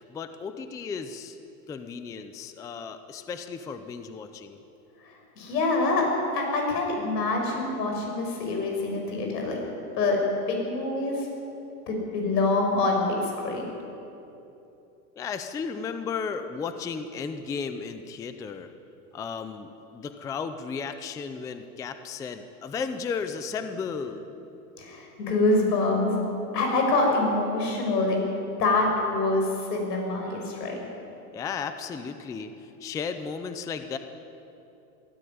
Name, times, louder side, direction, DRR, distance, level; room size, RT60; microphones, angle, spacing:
voice 1, 0.1-1.4 1.7-4.6 15.2-18.7 19.1-24.5 31.3-32.5 32.8-34.0, left 5 dB, 10° left, 9 dB, 0.4 m, -34 dB
voice 2, 5.4-6.1 6.3-9.6 9.9-10.2 10.5-11.3 11.9-13.7 24.8-26.2 26.5-28.2 28.6-30.7, left 2 dB, 85° left, 1 dB, 6.9 m, -25 dB
22.5 x 14.0 x 9.3 m, 2.9 s
supercardioid pair, 145°, 48 cm